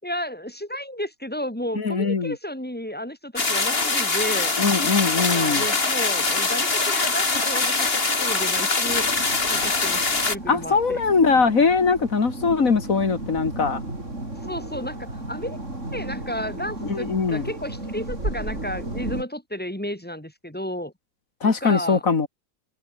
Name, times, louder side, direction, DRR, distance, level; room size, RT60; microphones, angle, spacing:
voice 1, 0.0-4.6 5.1-7.9 8.2-9.1 9.5-11.0 14.4-15.6 15.9-20.9 21.4-22.0, equal, 5° left, 5.9 m, -32 dB
voice 2, 1.8-2.4 4.6-5.6 10.5-13.8 16.8-17.4 21.4-22.3, left 4 dB, 80° left, 2.6 m, -21 dB
sound 1, 3.4-10.4, left 3 dB, 45° left, 2.8 m, -23 dB
sound 2, 8.9-19.2, right 2 dB, 60° right, 7.0 m, -34 dB
omnidirectional pair, 1.4 m